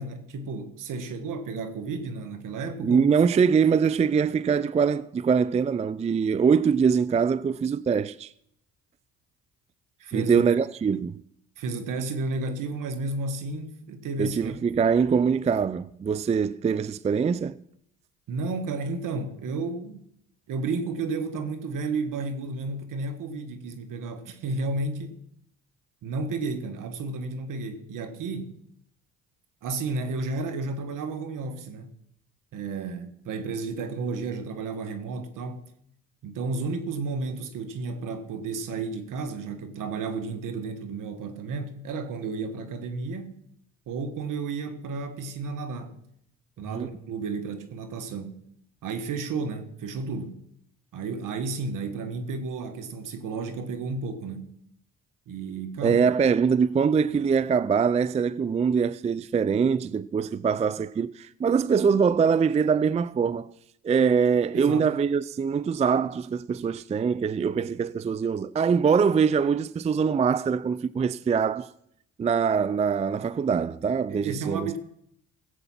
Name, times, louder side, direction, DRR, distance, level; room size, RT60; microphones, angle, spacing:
voice 1, 0.0-3.0 10.0-10.6 11.6-14.6 18.3-20.0 20.5-25.2 26.0-28.6 29.6-31.9 32.5-35.6 36.2-43.3 43.9-45.9 46.6-48.3 48.8-50.4 50.9-54.5 55.3-56.0 64.5-64.9 74.1-74.8, right 3 dB, 65° right, 1.8 m, -32 dB
voice 2, 2.8-8.3 10.1-11.2 14.2-17.6 46.7-46.9 55.8-63.5 63.8-71.7 72.2-74.7, right 6 dB, 20° right, 0.4 m, -23 dB
16.5 x 7.9 x 5.8 m
supercardioid pair, 70°, 34 cm